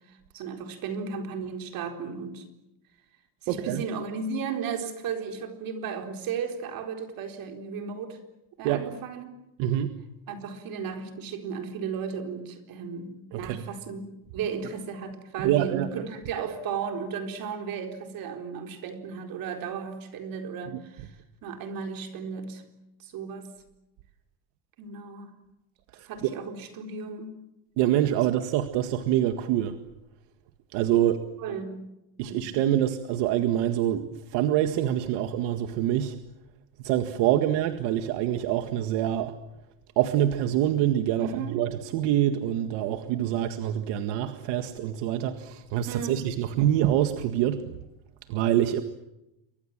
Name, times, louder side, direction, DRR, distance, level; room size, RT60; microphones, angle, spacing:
voice 1, 0.0-2.4 3.4-8.2 8.6-9.3 10.3-21.2 21.4-22.6 23.0-23.5 24.8-25.4 26.1-27.4 31.4-31.9 32.2-32.4 41.2-41.7 45.8-46.3, right 6 dB, 55° right, 5 dB, 4.3 m, -35 dB
voice 2, 3.5-3.8 8.6-8.8 9.6-9.9 13.3-13.6 15.4-16.0 26.0-26.3 27.8-29.8 30.7-31.2 32.2-36.2 36.8-39.3 40.0-47.8 48.3-48.8, right 12 dB, 85° right, 8 dB, 1.9 m, -25 dB
29.5 x 24.0 x 7.5 m, 0.90 s
cardioid pair, 165°, 41 cm